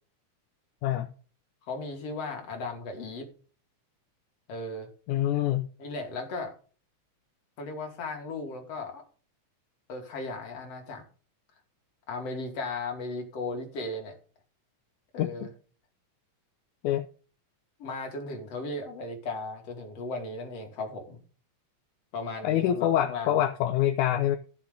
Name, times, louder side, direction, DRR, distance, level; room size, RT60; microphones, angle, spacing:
voice 1, 0.8-1.1 5.1-5.7 15.2-15.5 16.8-17.1 22.4-24.4, left 12 dB, 80° left, 2.1 m, -26 dB
voice 2, 1.7-3.3 4.5-4.9 5.8-6.5 7.6-9.0 9.9-11.1 12.1-14.1 15.1-15.5 17.8-21.2 22.1-23.4, left 3 dB, 55° left, 3.4 m, -36 dB
14.0 x 7.0 x 3.7 m
omnidirectional pair, 3.6 m